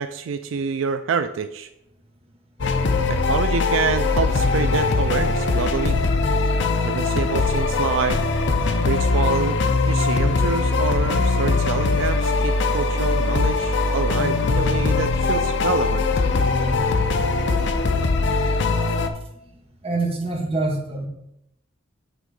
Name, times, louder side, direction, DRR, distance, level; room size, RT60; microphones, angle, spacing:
voice 1, 0.0-1.7 3.1-6.0 6.8-8.2 8.8-16.2, right 5 dB, 75° right, 9 dB, 0.4 m, -27 dB
sound 1, 2.6-19.1, left 3 dB, 65° left, 0.6 m, -21 dB
voice 2, 19.8-21.1, right 2 dB, 30° right, 0 dB, 1.3 m, -25 dB
8.3 x 3.7 x 4.8 m, 0.80 s
head